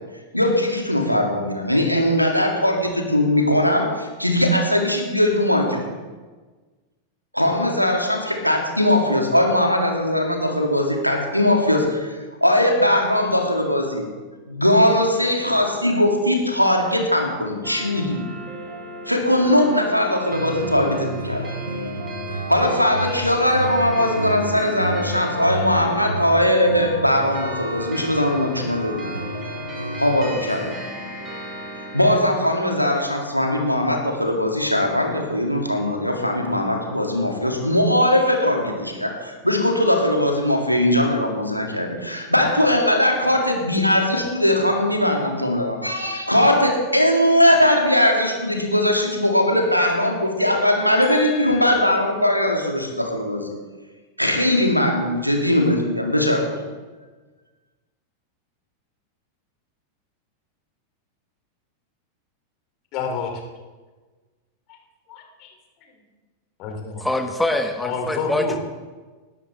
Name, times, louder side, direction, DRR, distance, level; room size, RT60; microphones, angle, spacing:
voice 1, 0.3-5.9 7.3-14.0 14.5-18.2 19.1-21.4 22.5-29.1 30.0-30.7 31.9-53.5 54.2-56.6, left 1 dB, 90° left, 1 dB, 2.2 m, -20 dB
sound 1, 17.6-32.2, right 1 dB, 20° right, 4.7 m, -36 dB
sound 2, 20.3-30.3, right 1 dB, 85° right, 1.0 m, -31 dB
voice 2, 51.0-51.7 62.9-63.3 64.7-64.8 65.1-65.5 66.6-67.0 67.8-68.6, left 5 dB, 40° left, 2 dB, 2.7 m, -30 dB
voice 3, 67.0-68.6, left 1 dB, 5° left, 6 dB, 1.3 m, -24 dB
19.0 x 13.5 x 3.3 m, 1.3 s
figure-of-eight pair, 90°, 0 cm